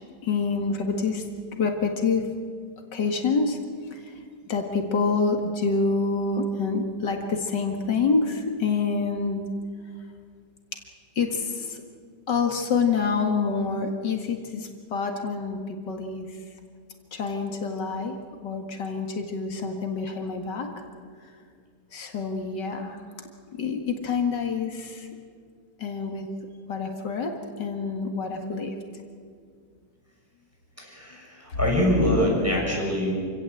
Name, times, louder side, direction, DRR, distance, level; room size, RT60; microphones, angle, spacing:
voice 1, 0.2-1.2 1.6-2.3 2.9-3.6 3.9-4.0 4.5-9.4 11.2-11.8 12.3-16.3 17.1-18.2 18.4-20.7 21.9-25.1 25.8-26.3 26.7-28.7, left 4 dB, 85° left, 4 dB, 2.5 m, -27 dB
voice 2, 30.8-33.2, equal, 10° right, -3 dB, 6.6 m, -24 dB
26.5 x 17.0 x 8.0 m, 2.1 s
omnidirectional pair, 1.8 m